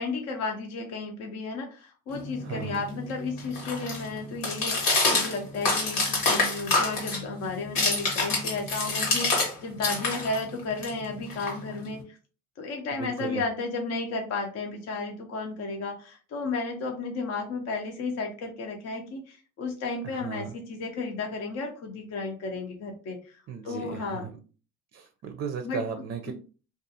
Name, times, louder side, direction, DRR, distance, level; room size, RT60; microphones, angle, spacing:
voice 1, 0.0-12.0 12.6-23.2 23.6-24.3 25.6-25.8, left 3 dB, 55° left, 3 dB, 0.6 m, -33 dB
sound 1, 2.1-9.5 9.8-12.0, left 3 dB, 85° left, 1.2 m, -27 dB
voice 2, 2.4-2.8 12.9-13.4 20.0-20.5 23.5-24.4 24.9-26.3, right 6 dB, 45° right, 6 dB, 0.5 m, -36 dB
2.4 x 2.4 x 2.7 m, 0.36 s
supercardioid pair, 75°, 31 cm